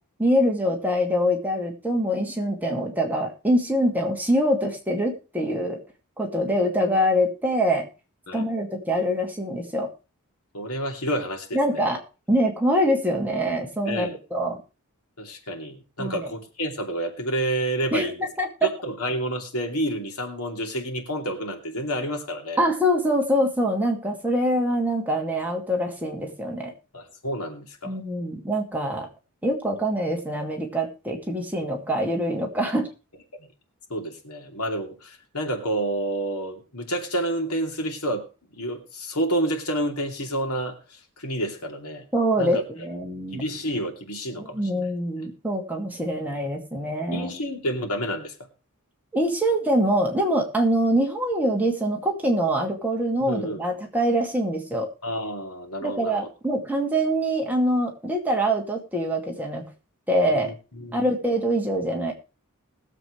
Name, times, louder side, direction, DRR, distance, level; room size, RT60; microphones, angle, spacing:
voice 1, 0.2-5.8 6.2-7.9 8.3-9.9 11.5-12.0 12.3-14.6 16.0-16.3 17.9-18.7 22.6-26.7 27.8-29.1 29.4-32.9 42.1-43.4 44.4-47.3 49.1-54.9 55.8-59.7 60.1-60.5 60.9-62.1, equal, 10° right, 0 dB, 2.3 m, -24 dB
voice 2, 10.5-11.9 13.9-14.2 15.2-18.3 18.6-22.6 26.9-27.9 33.9-38.3 38.5-42.1 42.4-42.6 43.3-44.9 47.1-48.3 53.2-53.6 55.0-56.3 60.3-61.0, right 1 dB, 85° left, 4 dB, 2.7 m, -29 dB
20.5 x 7.6 x 3.2 m, 0.32 s
head